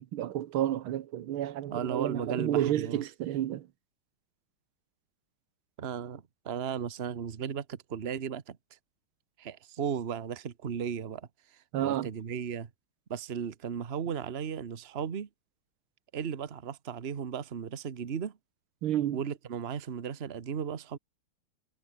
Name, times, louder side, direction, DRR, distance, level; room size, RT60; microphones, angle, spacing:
voice 1, 0.0-3.7 11.7-12.1 18.8-19.2, right 12 dB, 90° right, 1.9 m, -31 dB
voice 2, 1.7-3.0 5.8-8.6 9.4-11.3 11.8-12.7 13.1-15.3 16.1-18.3 19.1-21.0, right 7 dB, 35° right, 1.2 m, -35 dB
omnidirectional pair, 2.2 m